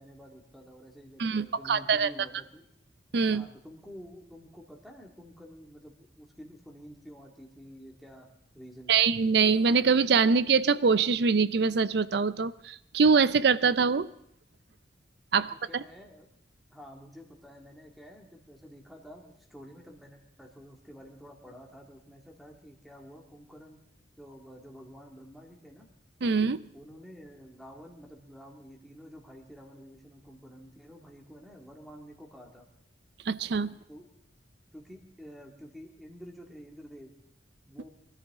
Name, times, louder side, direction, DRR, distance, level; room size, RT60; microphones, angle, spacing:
voice 1, 0.0-2.6 3.2-8.3 8.5-9.1 15.4-16.3 16.7-23.8 24.2-25.9 26.7-32.7 33.9-34.1 34.7-37.1 37.7-38.0, equal, ahead, 0 dB, 2.1 m, -49 dB
voice 2, 1.2-2.1 3.1-3.5 8.9-14.1 15.3-15.8 26.2-26.6 33.3-33.7, right 5 dB, 60° right, 16 dB, 0.5 m, -24 dB
23.5 x 13.5 x 3.6 m, 0.72 s
head